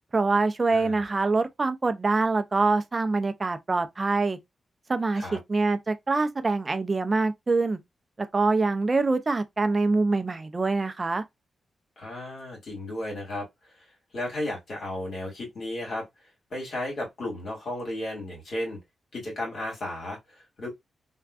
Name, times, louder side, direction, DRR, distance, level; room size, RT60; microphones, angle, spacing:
voice 1, 0.1-4.4 4.9-7.8 8.2-11.2, right 3 dB, 35° right, 0.5 m, -25 dB
voice 2, 0.7-1.0 5.2-5.4 12.0-13.5 14.1-16.1 16.5-18.8 19.1-20.7, left 1 dB, 65° left, 2.0 m, -34 dB
3.5 x 2.3 x 2.3 m
cardioid pair, 55°, 0 cm